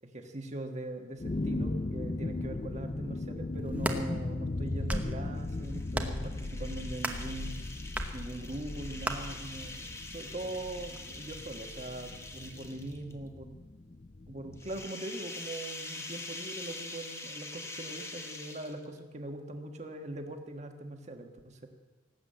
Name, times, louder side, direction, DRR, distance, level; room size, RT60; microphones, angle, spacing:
voice 1, 0.0-7.6 8.1-13.6 14.3-21.7, right 1 dB, 35° right, 5 dB, 1.4 m, -41 dB
sound 1, 1.2-14.9, left 2 dB, 35° left, 0.4 m, -38 dB
sound 2, 3.6-4.0 4.7-5.2 5.9-6.3 7.0-7.3 7.9-8.1 9.0-9.2, right 1 dB, 10° right, 1.0 m, -33 dB
sound 3, 5.4-13.1 14.5-19.0, left 2 dB, 15° left, 1.2 m, -44 dB
18.5 x 8.2 x 7.8 m, 1.2 s
head